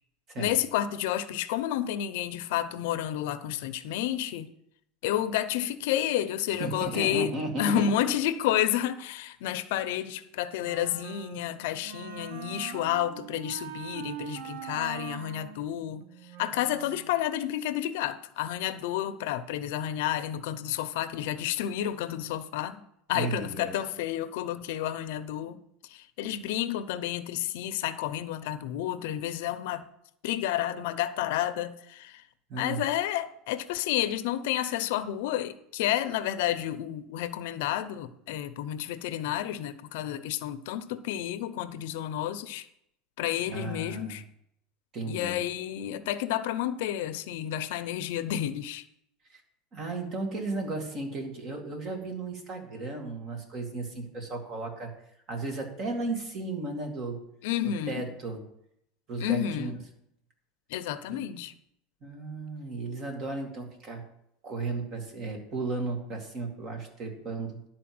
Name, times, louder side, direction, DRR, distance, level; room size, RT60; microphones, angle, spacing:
voice 1, 0.4-4.5 5.0-16.0 16.4-22.8 23.1-25.6 25.9-29.8 30.2-32.2 32.6-42.7 43.2-44.2 45.1-48.8 57.4-58.1 59.2-59.8 60.7-61.5, left 12 dB, 75° left, 0.7 m, -30 dB
voice 2, 6.6-7.9 23.1-23.7 32.5-32.8 43.5-44.2 44.9-45.4 49.3-49.4 49.7-54.9 55.3-57.2 57.9-58.4 59.1-59.7 61.1-61.2 62.0-64.1 64.4-67.6, right 3 dB, 35° right, 2.1 m, -34 dB
Wind instrument woodwind instrument, 10.6-17.2, right 10 dB, 85° right, 0.7 m, -43 dB
11.0 x 4.5 x 7.7 m
supercardioid pair, 155°, 0 cm